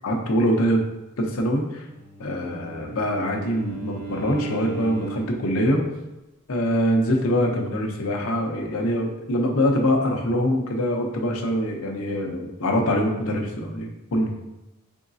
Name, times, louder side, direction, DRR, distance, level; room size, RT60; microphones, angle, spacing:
voice 1, 0.0-0.8 1.2-1.8 2.2-5.8 6.5-14.3, equal, 70° left, 1 dB, 0.7 m, -24 dB
Bowed string instrument, 1.8-5.5, right 5 dB, 25° right, 1.4 m, -36 dB
3.9 x 3.5 x 2.6 m, 1.0 s
head